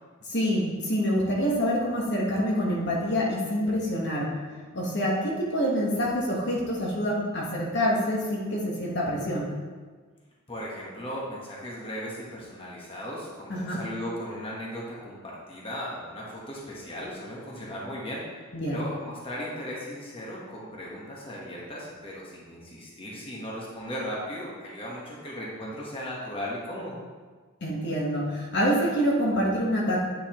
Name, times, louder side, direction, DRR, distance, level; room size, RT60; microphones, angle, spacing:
voice 1, 0.3-4.3 4.7-9.5 13.5-13.8 18.5-18.8 27.6-30.0, equal, 55° left, -4 dB, 1.3 m, -26 dB
voice 2, 10.5-18.4 18.7-27.0, equal, 25° left, -5 dB, 1.3 m, -37 dB
8.8 x 5.3 x 3.0 m, 1.5 s
head